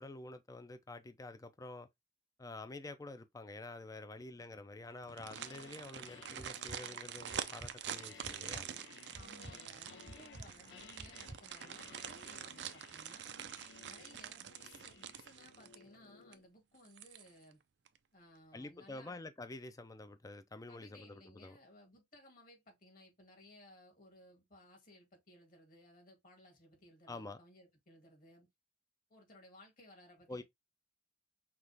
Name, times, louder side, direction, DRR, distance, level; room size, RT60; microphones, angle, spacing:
voice 1, 0.0-1.9 2.4-8.7 18.5-21.6 27.1-27.4 30.3-30.4, left 2 dB, 20° left, 0.5 m, -48 dB
sound 1, 5.0-16.0 16.3-16.4 16.8-17.5 17.9-18.0, right 9 dB, 70° right, 0.5 m, -46 dB
sound 2, 5.1-5.8 6.1-16.5, left 6 dB, 70° left, 0.5 m, -59 dB
sound 3, 6.4-6.8 7.3-7.7 8.2-8.6 9.1-9.6 10.1-10.5 11.0-11.4, right 1 dB, 30° right, 0.7 m, -50 dB
voice 2, 9.1-13.3 13.8-17.6 18.1-19.2 20.7-28.5 29.1-30.4, left 1 dB, 50° left, 2.2 m, -60 dB
5.8 x 2.4 x 3.3 m
head